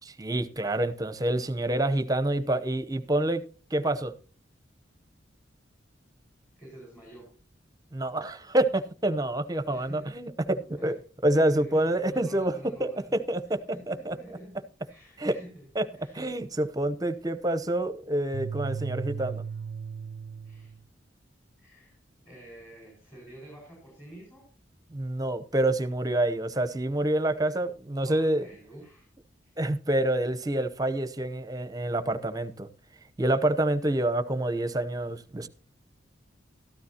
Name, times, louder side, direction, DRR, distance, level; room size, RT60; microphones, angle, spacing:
voice 1, 0.2-3.4 3.7-4.1 7.9-10.9 11.2-12.5 12.8-13.6 13.9-14.1 15.2-15.4 15.7-19.4 24.9-28.5 29.6-32.7 33.2-35.5, right 1 dB, 20° right, 0.8 m, -27 dB
voice 2, 6.6-7.3 9.7-10.1 10.8-10.9 11.3-13.0 13.7-14.6 14.9-15.6 15.9-16.2 20.4-20.7 21.6-22.0 22.2-24.5 28.0-29.1, right 1 dB, 15° left, 5.1 m, -48 dB
sound 1, 18.3-20.8, right 6 dB, 85° right, 0.4 m, -36 dB
13.5 x 12.5 x 2.9 m
head